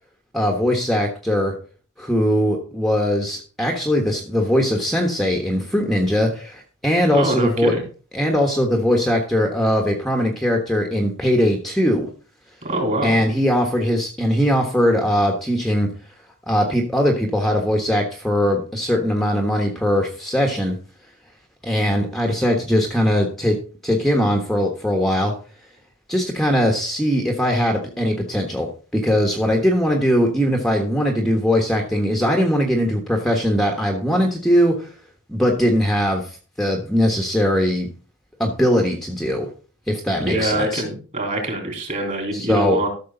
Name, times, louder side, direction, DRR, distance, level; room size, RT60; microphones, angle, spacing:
voice 1, 0.3-1.5 2.0-7.7 8.1-12.1 13.0-15.9 16.5-20.8 21.6-23.5 23.8-25.3 26.1-28.7 28.9-34.9 35.3-37.9 38.4-39.5 39.9-40.8 42.3-42.8, equal, ahead, 3 dB, 1.3 m, -20 dB
voice 2, 7.1-7.8 12.6-13.2 40.2-42.9, right 1 dB, 35° right, 3 dB, 3.7 m, -24 dB
13.0 x 6.5 x 3.9 m, 0.38 s
head